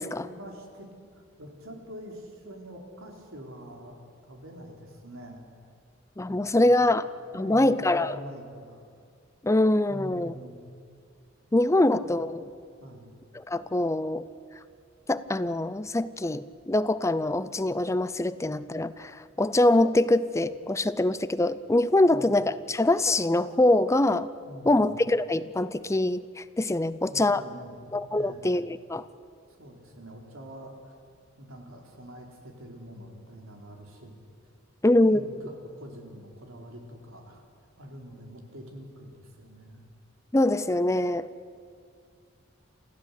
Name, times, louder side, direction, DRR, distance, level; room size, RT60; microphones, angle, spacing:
voice 1, 0.2-4.0 4.3-5.4 6.2-6.9 7.3-8.8 9.9-10.6 11.7-12.2 12.8-13.1 22.0-22.3 24.5-25.0 26.8-28.5 29.6-30.9 31.4-34.2 35.0-37.4 37.8-39.9, equal, 85° right, 1 dB, 4.2 m, -45 dB
voice 2, 6.2-7.1 7.3-8.1 9.4-10.3 11.5-12.4 13.5-14.2 15.1-24.3 24.7-27.4 27.9-29.0 34.8-35.2 40.3-41.3, left 1 dB, 15° left, 15 dB, 0.5 m, -24 dB
28.5 x 15.0 x 8.4 m, 2.3 s
head